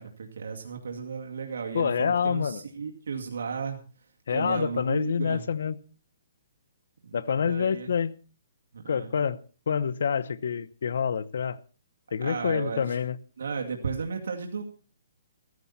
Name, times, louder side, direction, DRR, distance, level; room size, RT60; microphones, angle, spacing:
voice 1, 0.0-3.8 4.3-5.4 7.0-7.9 8.7-9.1 12.2-13.0 13.4-14.6, right 5 dB, 85° right, 2.3 m, -34 dB
voice 2, 1.7-2.6 4.3-5.8 7.1-8.1 8.9-9.4 9.7-11.6 12.1-13.2, left 7 dB, 70° left, 0.9 m, -27 dB
15.5 x 14.5 x 4.2 m
hypercardioid pair, 165°, 0 cm